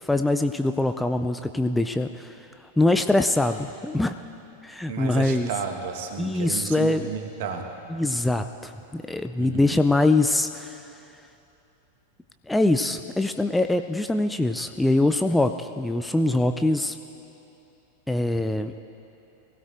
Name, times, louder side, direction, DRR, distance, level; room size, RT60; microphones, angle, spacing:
voice 1, 0.0-2.3 2.8-4.1 4.6-5.5 6.2-7.0 7.9-10.8 12.5-17.0 18.1-18.7, left 2 dB, 5° left, 8 dB, 0.4 m, -23 dB
voice 2, 4.9-7.6 9.4-9.8, right 6 dB, 50° right, 4 dB, 1.3 m, -32 dB
23.0 x 16.0 x 2.5 m, 2.9 s
figure-of-eight pair, 90°, 0 cm